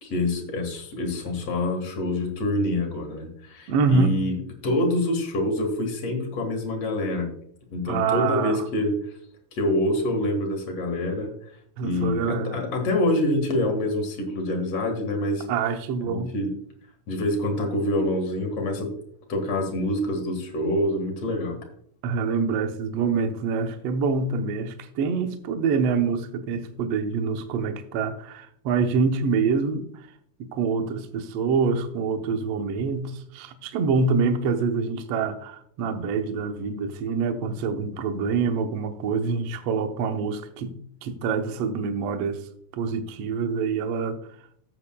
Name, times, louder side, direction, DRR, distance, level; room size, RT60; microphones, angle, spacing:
voice 1, 0.0-7.3 7.7-8.9 9.5-11.3 11.8-15.5 16.1-16.5 17.1-18.9 19.3-21.7, left 1 dB, 55° left, 2.5 m, -26 dB
voice 2, 3.7-4.1 7.9-8.6 11.8-12.6 15.5-16.3 22.0-29.9 30.4-40.7 41.0-42.4 42.7-44.2, right 5 dB, 70° right, 1.5 m, -26 dB
13.5 x 8.6 x 2.2 m
omnidirectional pair, 3.8 m